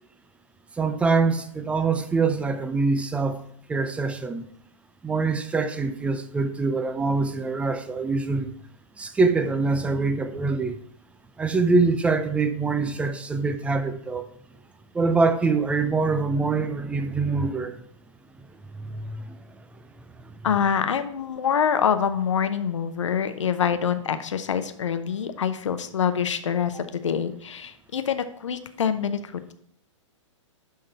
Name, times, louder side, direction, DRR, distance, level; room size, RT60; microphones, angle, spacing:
voice 1, 0.8-3.4 3.7-4.5 5.0-8.5 9.0-10.8 11.4-14.3 14.9-17.8 18.8-19.4, right 4 dB, 5° right, 0.4 m, -24 dB
voice 2, 20.4-29.5, left 7 dB, 70° left, 0.8 m, -25 dB
11.5 x 3.8 x 4.2 m
figure-of-eight pair, 115°, 16 cm